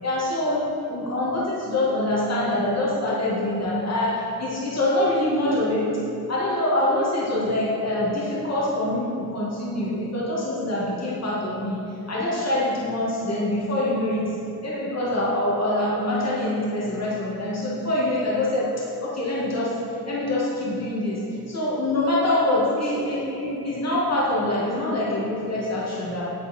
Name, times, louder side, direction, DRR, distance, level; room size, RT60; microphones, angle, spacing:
voice 1, 0.0-5.9 6.3-11.8 12.1-14.2 14.6-19.7 20.1-21.2 21.5-26.3, left 1 dB, 45° left, -6 dB, 2.0 m, -25 dB
8.9 x 7.0 x 4.3 m, 3.0 s
wide cardioid pair, 120°, 37 cm